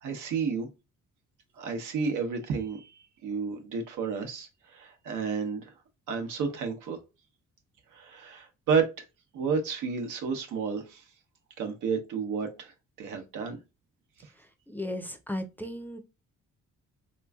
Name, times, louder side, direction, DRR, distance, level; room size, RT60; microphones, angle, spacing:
voice 1, 0.0-0.7 1.6-5.7 6.1-7.0 7.9-8.9 9.3-11.0 11.6-13.6, right 5 dB, 85° right, 0.9 m, -31 dB
voice 2, 14.7-16.0, left 1 dB, 5° left, 0.5 m, -35 dB
3.5 x 3.0 x 2.2 m
cardioid pair, 90°, 30 cm